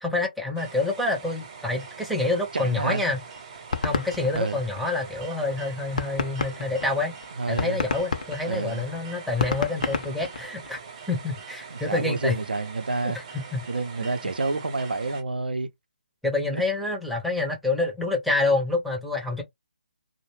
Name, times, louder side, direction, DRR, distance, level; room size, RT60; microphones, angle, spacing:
voice 1, 0.0-3.2 3.8-7.1 7.5-10.8 11.1-12.4 13.0-13.7 14.0-14.1 16.2-19.4, left 2 dB, ahead, 0.5 m, -27 dB
sound 1, 0.5-15.2, right 5 dB, 35° right, 0.8 m, -43 dB
voice 2, 2.5-3.0 4.3-4.6 7.4-7.8 8.5-8.8 11.7-13.2 13.7-15.7 16.5-16.6, right 3 dB, 75° right, 0.5 m, -28 dB
sound 2, 3.1-5.2 5.6-5.7 6.0-10.9, left 5 dB, 50° left, 0.6 m, -30 dB
2.3 x 2.1 x 3.2 m
figure-of-eight pair, 150°, 5 cm